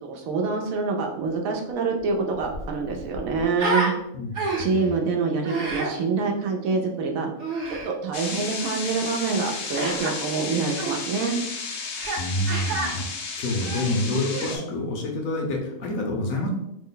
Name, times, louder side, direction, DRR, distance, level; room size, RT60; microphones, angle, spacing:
voice 1, 0.0-3.9 4.6-7.3 7.8-11.4, right 4 dB, 90° right, 2 dB, 1.1 m, -26 dB
Human voice, 2.0-2.1 2.3-3.9 4.3-4.8 5.4-5.9 7.4-7.9 9.8-10.1 10.7-11.0 12.0-12.2 12.5-12.9 13.5-14.6, right 3 dB, 65° right, 1.0 m, -29 dB
voice 2, 4.1-5.0 12.1-16.5, left 1 dB, 80° left, 1 dB, 1.1 m, -28 dB
sound 1, 8.1-14.6, left 5 dB, 60° left, 0.6 m, -33 dB
3.2 x 2.1 x 3.7 m, 0.81 s
omnidirectional pair, 1.4 m